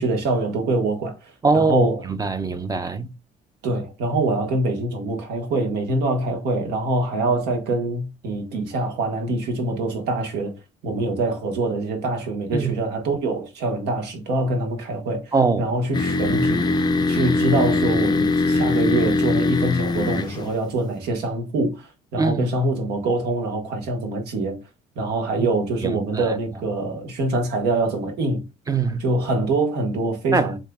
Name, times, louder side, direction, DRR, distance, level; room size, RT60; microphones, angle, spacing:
voice 1, 0.0-2.1 3.6-10.5 10.8-24.6 24.9-28.4 29.0-30.6, right 2 dB, 75° right, 1.5 m, -24 dB
voice 2, 1.4-3.1 12.5-12.7 15.3-15.7 22.2-22.5 25.4-25.5 25.8-26.3 28.7-29.0 30.3-30.5, right 4 dB, 20° right, 0.6 m, -22 dB
sound 1, 15.9-20.6, left 3 dB, 25° left, 0.5 m, -21 dB
7.3 x 2.8 x 2.3 m
cardioid pair, 110°, 17 cm